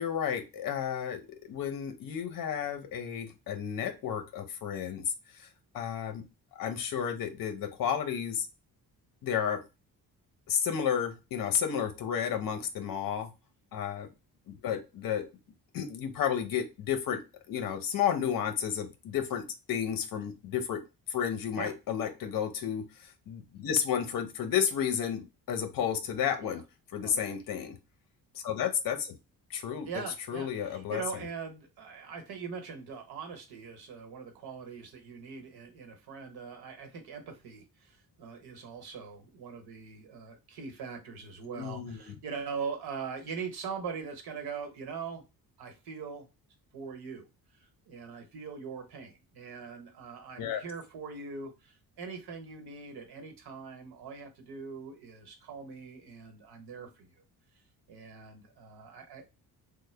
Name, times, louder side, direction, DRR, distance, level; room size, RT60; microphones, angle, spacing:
voice 1, 0.0-5.0 5.4-5.5 5.7-6.2 6.5-8.5 9.2-9.6 10.5-13.3 13.7-14.1 14.5-15.2 15.7-17.2 17.5-20.8 21.1-26.6 26.9-27.8 28.3-29.2 29.5-29.9 30.3-31.0 41.5-42.2 50.4-50.6, left 8 dB, 60° left, 6 dB, 0.7 m, -32 dB
voice 2, 29.9-45.2 45.6-46.3 46.7-47.3 47.9-57.1 57.9-59.2, right 5 dB, 85° right, 4 dB, 1.0 m, -42 dB
3.2 x 2.1 x 3.2 m, 0.27 s
wide cardioid pair, 155°, 38 cm